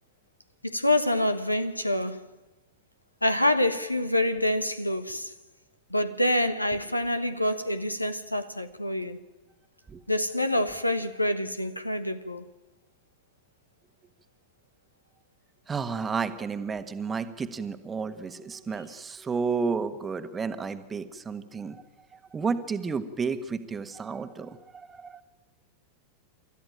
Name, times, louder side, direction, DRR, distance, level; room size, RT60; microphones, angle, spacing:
voice 1, 0.6-2.3 3.2-5.3 5.9-9.2 10.1-12.4, left 1 dB, 85° left, 1.2 m, -26 dB
voice 2, 15.7-21.8 22.1-25.2, right 5 dB, 15° right, 1.4 m, -32 dB
29.0 x 13.5 x 9.0 m
figure-of-eight pair, 90°, 0 cm